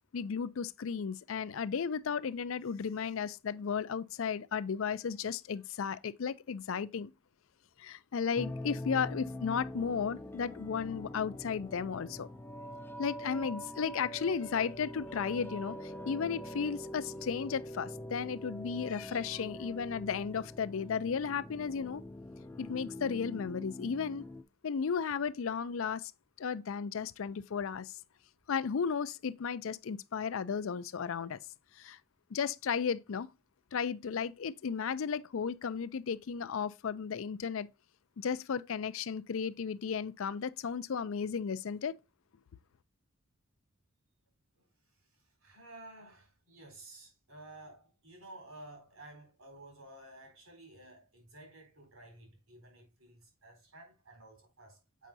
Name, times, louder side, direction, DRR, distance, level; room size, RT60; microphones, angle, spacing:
voice 1, 0.1-7.1 7.8-12.3 13.0-22.0 22.6-24.2 24.6-26.1 26.4-27.9 28.5-31.4 31.8-32.0 32.3-33.3 33.7-37.7 38.2-41.9, left 6 dB, 65° left, 0.4 m, -34 dB
sound 1, 8.3-24.4, left 1 dB, 10° left, 0.5 m, -44 dB
voice 2, 45.0-55.1, right 2 dB, 85° right, 4.0 m, -53 dB
7.3 x 5.5 x 2.6 m
head